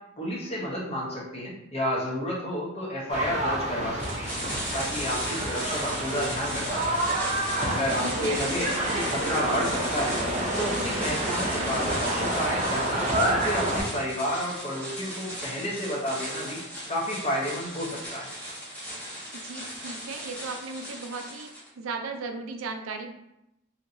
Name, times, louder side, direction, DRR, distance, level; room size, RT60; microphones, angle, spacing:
voice 1, 0.2-4.3 4.7-7.0 7.7-8.7 8.9-10.2 10.6-16.6 16.9-18.3, equal, 30° left, -3 dB, 0.8 m, -31 dB
sound 1, 3.1-13.8, right 1 dB, 35° right, 0.7 m, -29 dB
sound 2, 4.0-21.7, equal, 10° left, 1.1 m, -36 dB
voice 2, 8.0-8.4 19.3-23.1, right 4 dB, 75° right, 5 dB, 0.4 m, -36 dB
2.9 x 2.8 x 2.6 m, 0.84 s
head